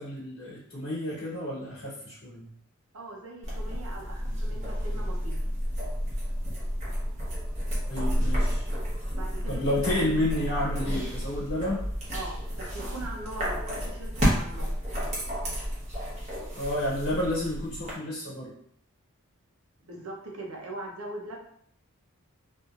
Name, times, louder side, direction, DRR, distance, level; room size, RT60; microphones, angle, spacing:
voice 1, 0.0-2.5 7.8-8.6 9.5-11.8 16.6-18.5, left 1 dB, 65° left, -7 dB, 1.3 m, -30 dB
voice 2, 2.9-5.4 9.1-9.7 12.1-14.7 19.8-21.4, right 2 dB, 80° right, 0 dB, 0.8 m, -41 dB
sound 1, 3.4-17.9, equal, 30° right, 0.8 m, -31 dB
3.0 x 2.6 x 2.4 m, 0.66 s
head